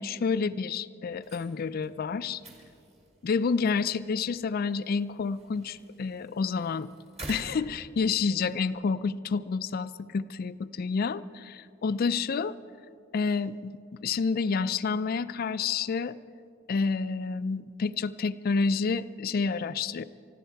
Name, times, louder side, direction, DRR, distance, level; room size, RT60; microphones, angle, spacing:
voice 1, 0.0-2.4 3.2-6.9 7.3-12.5 13.1-16.1 16.7-20.0, left 5 dB, 50° left, 15 dB, 0.4 m, -29 dB
sound 1, 1.1-8.6, right 1 dB, 30° right, 2.1 m, -49 dB
20.0 x 14.5 x 4.6 m, 2.4 s
head